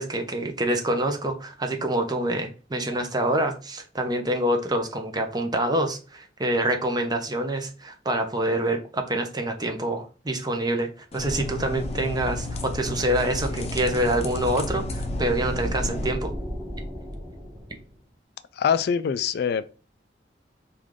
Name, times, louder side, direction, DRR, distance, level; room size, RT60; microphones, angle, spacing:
voice 1, 0.0-16.3, right 1 dB, 25° right, 0.7 m, -26 dB
sound 1, 11.1-16.1, left 2 dB, 35° left, 0.7 m, -32 dB
sound 2, 11.7-18.0, equal, ahead, 1.5 m, -35 dB
voice 2, 18.6-19.7, left 7 dB, 60° left, 0.3 m, -24 dB
4.9 x 2.5 x 3.6 m
head